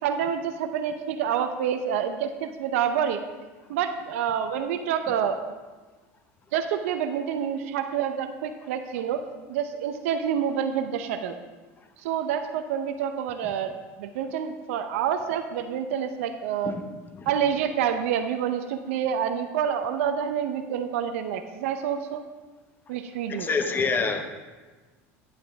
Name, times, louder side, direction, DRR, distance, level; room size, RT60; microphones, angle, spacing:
voice 1, 0.0-3.2 3.7-5.4 6.5-9.2 9.5-11.4 12.0-13.7 14.0-16.8 17.3-22.2 22.9-23.5, right 8 dB, 80° right, 7 dB, 0.6 m, -27 dB
voice 2, 23.3-24.2, left 4 dB, 25° left, 6 dB, 1.0 m, -25 dB
9.5 x 8.5 x 3.4 m, 1.3 s
supercardioid pair, 95°, 7 cm